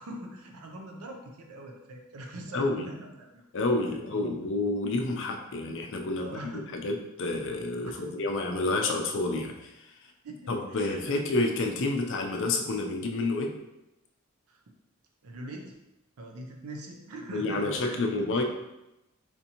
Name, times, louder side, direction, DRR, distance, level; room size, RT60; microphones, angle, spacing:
voice 1, 0.0-3.4 4.1-4.4 6.1-6.7 7.8-8.1 10.2-11.2 14.5-14.6 15.2-15.7 16.2-18.4, right 1 dB, 85° right, 2 dB, 0.5 m, -42 dB
voice 2, 2.5-2.9 3.5-9.9 10.5-13.5 17.3-18.4, left 2 dB, 60° left, 3 dB, 0.5 m, -29 dB
4.3 x 2.6 x 2.8 m, 0.94 s
head